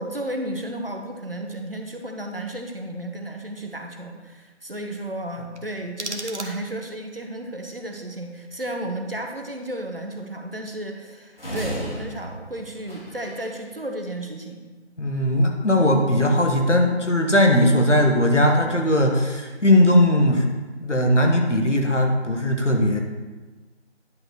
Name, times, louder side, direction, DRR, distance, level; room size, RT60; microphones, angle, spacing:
voice 1, 0.0-14.7, right 1 dB, 50° right, 3 dB, 1.0 m, -33 dB
sound 1, 5.5-7.0, right 2 dB, 70° right, 1.2 m, -37 dB
sound 2, 11.4-13.6, equal, 55° left, 2.9 m, -34 dB
voice 2, 15.0-20.4 20.8-23.0, left 1 dB, 80° left, 2 dB, 1.6 m, -19 dB
10.5 x 4.7 x 4.5 m, 1.3 s
figure-of-eight pair, 180°, 36 cm